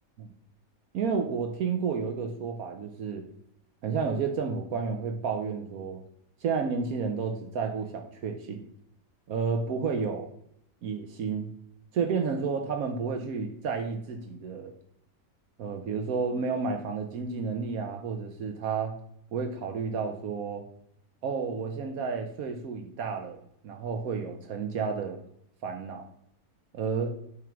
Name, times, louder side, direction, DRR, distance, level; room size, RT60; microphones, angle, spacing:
voice 1, 0.9-3.3 3.8-6.0 6.4-8.6 9.3-10.3 10.8-11.5 11.9-14.7 15.6-19.0 19.3-20.6 21.2-25.2 25.6-26.0 26.7-27.1, right 5 dB, 75° right, 5 dB, 1.2 m, -31 dB
9.1 x 3.6 x 5.9 m, 0.73 s
omnidirectional pair, 1.5 m